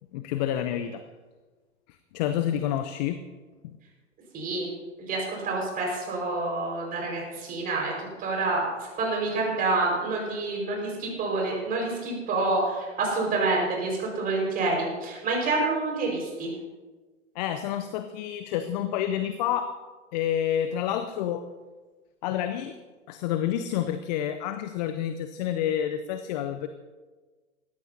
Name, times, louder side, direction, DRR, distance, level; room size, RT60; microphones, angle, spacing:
voice 1, 0.1-1.0 2.1-3.2 17.4-19.7 20.1-21.4 22.2-22.8 23.1-26.7, left 10 dB, 35° left, 10 dB, 0.7 m, -28 dB
voice 2, 4.3-4.7 5.0-16.5, right 3 dB, 25° right, -1 dB, 5.0 m, -28 dB
18.5 x 15.0 x 2.8 m, 1.3 s
figure-of-eight pair, 105°, 36 cm